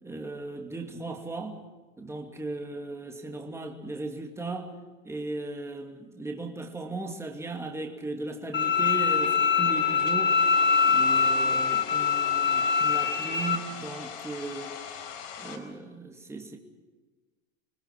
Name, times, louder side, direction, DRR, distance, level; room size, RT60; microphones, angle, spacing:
voice 1, 0.0-1.6 2.0-4.8 5.0-10.4 10.8-14.8 15.4-16.6, right 3 dB, 5° right, 2.7 m, -37 dB
Bowed string instrument, 8.5-13.6, left 6 dB, 25° left, 3.2 m, -23 dB
Domestic sounds home sounds, 10.0-15.6, left 8 dB, 55° left, 4.6 m, -41 dB
27.0 x 20.5 x 6.1 m
hypercardioid pair, 115°, 40 cm